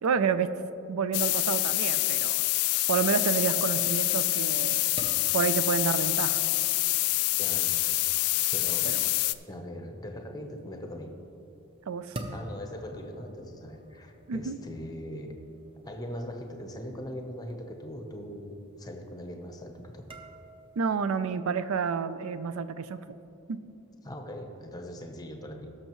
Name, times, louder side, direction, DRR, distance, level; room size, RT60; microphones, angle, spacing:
voice 1, 0.0-0.5 0.9-2.4 2.9-4.9 5.3-6.4 8.8-9.0 11.9-12.2 14.3-14.6 20.8-23.0 23.5-23.6, right 6 dB, 70° right, 12 dB, 0.4 m, -29 dB
sound 1, 1.1-9.3, left 18 dB, 80° left, 0.3 m, -26 dB
sound 2, 4.3-21.1, right 1 dB, 25° right, 0.7 m, -49 dB
voice 2, 7.4-7.8 8.5-8.9 9.5-11.1 12.3-15.3 15.8-20.1 24.0-25.7, equal, 15° left, 4 dB, 0.8 m, -40 dB
17.5 x 6.7 x 3.1 m, 2.9 s
head